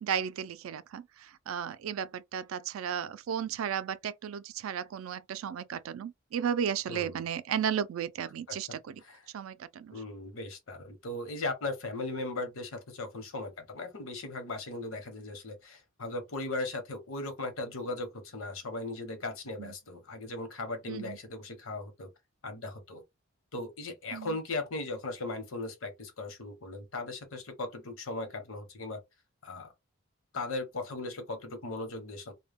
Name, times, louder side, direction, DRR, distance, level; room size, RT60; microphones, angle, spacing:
voice 1, 0.0-9.0 9.3-10.0 19.6-19.7 20.9-21.2 24.1-24.4, right 8 dB, 75° right, 0.3 m, -34 dB
voice 2, 6.9-7.2 8.5-8.6 9.0-9.2 9.9-22.1 22.4-23.0 23.5-29.0 29.4-29.7 30.3-32.3, left 2 dB, 75° left, 0.9 m, -38 dB
2.2 x 2.1 x 3.3 m
head